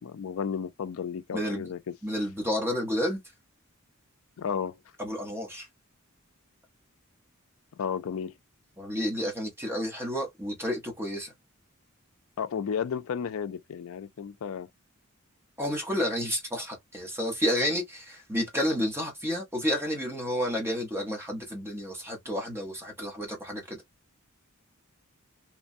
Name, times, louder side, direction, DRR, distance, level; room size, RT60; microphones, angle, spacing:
voice 1, 0.0-1.9 4.4-4.8 7.8-8.3 12.4-14.7, left 7 dB, 70° left, 0.4 m, -33 dB
voice 2, 1.3-1.6 2.0-3.2 5.0-5.7 8.8-11.3 15.6-23.8, equal, 10° right, 0.9 m, -30 dB
3.0 x 2.2 x 2.5 m
head